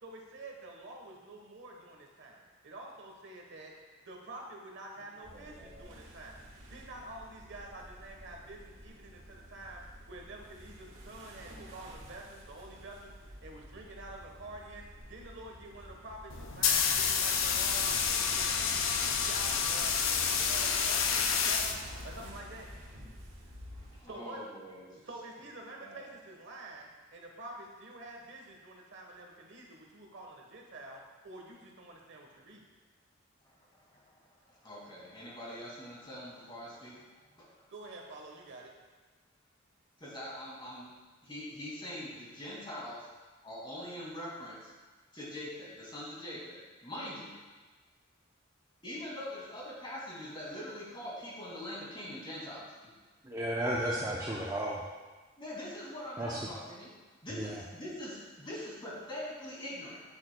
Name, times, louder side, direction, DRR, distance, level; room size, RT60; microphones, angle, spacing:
voice 1, 0.0-3.7 4.1-6.4 6.7-9.8 10.1-14.8 15.1-21.8 22.0-22.7 24.0-24.4 24.9-32.7 37.7-38.7, right 2 dB, 65° right, 0 dB, 1.2 m, -48 dB
sound 1, 5.2-24.0, equal, 85° right, 1.5 m, -51 dB
voice 2, 5.3-5.8 24.0-24.9 25.8-26.1 34.0-34.1 34.5-37.0 37.4-37.6 40.0-40.9 41.2-43.1 43.4-44.7 45.1-47.4 48.8-52.7 55.4-56.9 57.2-60.0, left 1 dB, 25° left, -5 dB, 2.3 m, -43 dB
sound 2, 16.3-22.3, left 6 dB, 90° left, 0.6 m, -29 dB
voice 3, 53.2-54.8 56.2-56.4 57.3-57.6, right 1 dB, 20° right, -4 dB, 0.6 m, -33 dB
9.0 x 8.4 x 2.2 m, 1.3 s
head